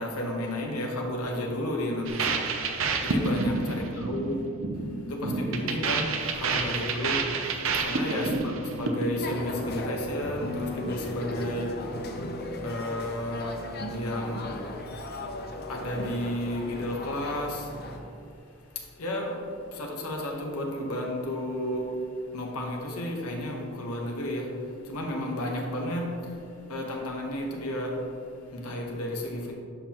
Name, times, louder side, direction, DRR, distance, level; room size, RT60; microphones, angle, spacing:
voice 1, 0.0-29.5, left 1 dB, 85° left, 1.2 m, -33 dB
sound 1, 2.1-9.3, right 4 dB, 65° right, 0.7 m, -29 dB
sound 2, 9.2-18.0, left 1 dB, 45° left, 0.7 m, -36 dB
10.5 x 5.8 x 3.0 m
head